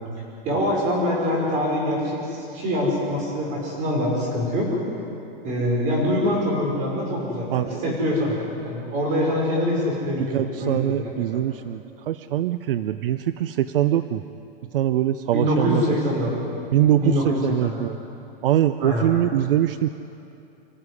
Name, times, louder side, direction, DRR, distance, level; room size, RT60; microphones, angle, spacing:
voice 1, 0.4-4.7 5.4-11.1 15.3-16.3 16.9-17.8 18.8-19.1, left 1 dB, 25° right, -1 dB, 5.3 m, -24 dB
voice 2, 7.5-7.9 10.3-14.2 14.7-15.8 16.7-18.0 18.4-19.9, right 11 dB, 65° right, 12 dB, 0.7 m, -23 dB
26.0 x 14.5 x 9.8 m, 2.8 s
supercardioid pair, 175°, 30 cm